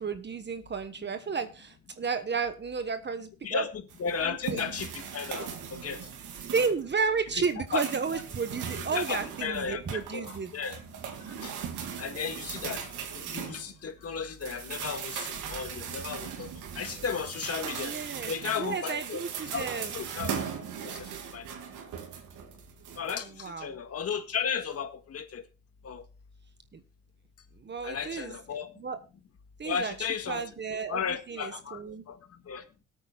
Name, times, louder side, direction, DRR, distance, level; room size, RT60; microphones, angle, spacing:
voice 1, 0.0-3.6 4.2-4.4 6.5-10.5 17.7-19.9 23.2-23.7 26.7-26.8 27.6-28.3 28.8-29.0 29.6-31.0 31.3-32.0, right 5 dB, 35° right, 1.2 m, -32 dB
voice 2, 3.4-6.1 7.7-7.8 8.1-8.2 8.9-11.5 12.0-17.9 18.3-19.2 19.5-20.5 20.8-21.5 23.0-25.4 25.8-26.0 27.8-28.7 29.6-30.4 30.9-32.6, left 6 dB, 50° left, 1.9 m, -35 dB
sound 1, 3.9-6.9 7.3-14.0 14.4-23.1, right 7 dB, 80° right, 2.5 m, -39 dB
21.0 x 8.9 x 2.4 m
cardioid pair, 90°, 30 cm